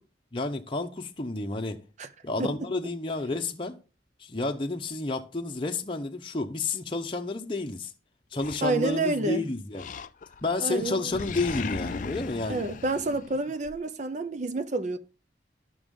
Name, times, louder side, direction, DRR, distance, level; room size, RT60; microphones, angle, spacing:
voice 1, 0.3-1.8 2.2-3.8 4.2-7.9 8.3-9.9 10.4-12.7, left 2 dB, 30° left, 0.8 m, -30 dB
Animal, 8.4-9.2 9.8-10.5 10.8-13.8, left 5 dB, 45° left, 0.4 m, -37 dB
voice 2, 8.6-9.4 10.6-11.2 12.5-15.0, right 2 dB, 40° right, 0.6 m, -29 dB
12.5 x 6.1 x 3.7 m
head